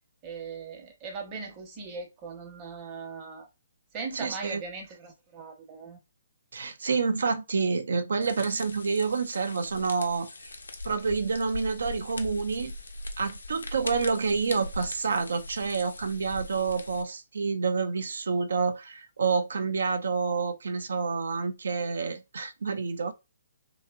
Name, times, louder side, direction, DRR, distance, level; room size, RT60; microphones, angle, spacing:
voice 1, 0.2-3.5 3.9-6.0, right 4 dB, 30° right, 0.9 m, -39 dB
voice 2, 4.1-4.6 6.5-10.5 10.8-12.7 13.2-23.1, right 5 dB, 70° right, 0.4 m, -28 dB
sound 1, 8.2-17.0, left 2 dB, 80° left, 0.5 m, -40 dB
2.9 x 2.3 x 2.2 m
figure-of-eight pair, 135°, 0 cm